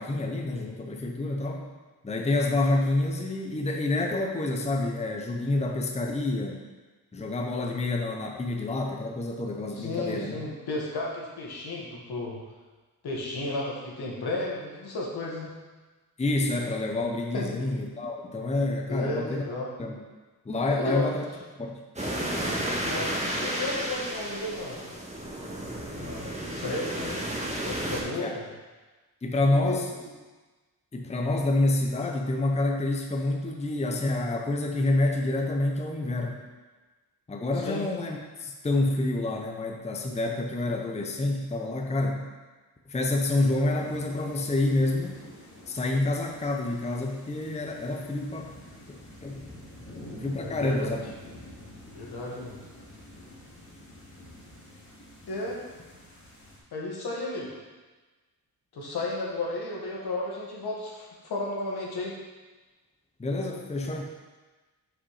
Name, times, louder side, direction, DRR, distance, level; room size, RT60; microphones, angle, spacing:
voice 1, 0.0-1.7 2.0-6.6 7.1-10.4 16.2-19.5 19.8-20.0 20.4-21.2 21.6-21.8 28.1-28.4 29.2-29.9 30.9-36.4 37.3-42.2 42.9-45.2 45.7-48.5 48.9-49.4 50.2-51.0 63.2-64.0, left 2 dB, 15° left, 2 dB, 0.7 m, -28 dB
voice 2, 9.8-12.4 13.0-15.5 17.3-17.6 18.9-19.7 20.7-21.0 22.8-24.8 26.0-27.2 27.6-28.4 29.4-29.9 37.6-37.9 49.7-49.8 50.4-51.0 51.9-52.6 55.3-55.6 56.7-57.5 58.7-62.1, left 2 dB, 75° left, -3 dB, 1.7 m, -33 dB
sound 1, 22.0-28.0, right 1 dB, 20° right, 1.5 m, -32 dB
sound 2, 43.7-56.6, left 1 dB, 35° left, 2.3 m, -47 dB
5.9 x 5.1 x 4.9 m, 1.3 s
cardioid pair, 90°, 38 cm